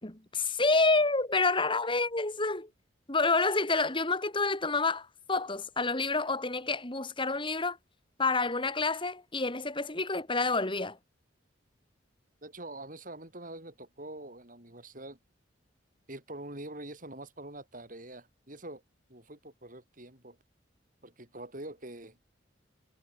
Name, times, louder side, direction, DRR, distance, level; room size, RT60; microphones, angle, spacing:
voice 1, 0.0-2.7 3.1-7.8 8.2-11.0, left 3 dB, 25° left, 3.0 m, -28 dB
voice 2, 12.4-15.2 16.1-18.8 19.1-20.4 21.0-22.2, right 1 dB, 45° right, 7.6 m, -45 dB
head